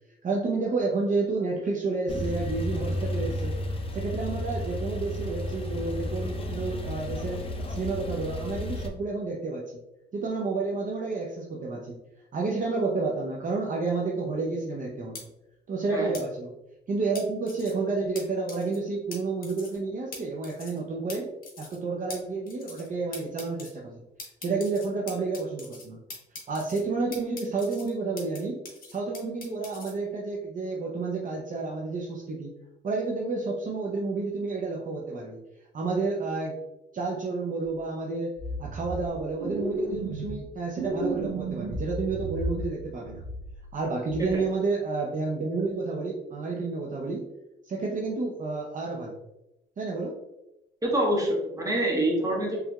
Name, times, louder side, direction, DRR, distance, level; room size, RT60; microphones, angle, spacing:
voice 1, 0.2-3.6 3.9-9.8 10.1-12.0 12.3-15.3 15.7-16.5 16.9-21.3 21.6-24.0 24.4-26.0 26.5-28.6 28.9-32.5 32.8-35.4 35.7-36.6 36.9-43.2 43.7-47.3 47.6-49.2 49.8-50.2, right 3 dB, 40° right, -1 dB, 0.6 m, -30 dB
Male speech man speaking / Car / Idling, 2.1-8.9, left 1 dB, 30° left, 0.6 m, -32 dB
sound 1, 15.1-15.2 16.1-16.2 17.1-17.7 18.1-18.2 18.5-18.8 19.1-19.2 19.4-19.8 20.1-20.2 20.4-20.8 21.1-21.2 21.4-21.8 22.1-22.2 22.5-22.9 23.1-23.7 24.2-25.8 26.1-26.8 27.1-28.4 28.6-29.9, left 4 dB, 45° left, 1.2 m, -42 dB
sound 2, 37.7-37.8 38.4-39.1 39.4-40.4 40.7-42.8 43.0-43.7 44.1-44.3, right 1 dB, 85° right, 1.1 m, -33 dB
voice 2, 50.8-52.6, right 1 dB, 15° right, -2 dB, 1.4 m, -25 dB
4.6 x 3.3 x 2.3 m, 0.95 s
cardioid pair, 90°, 20 cm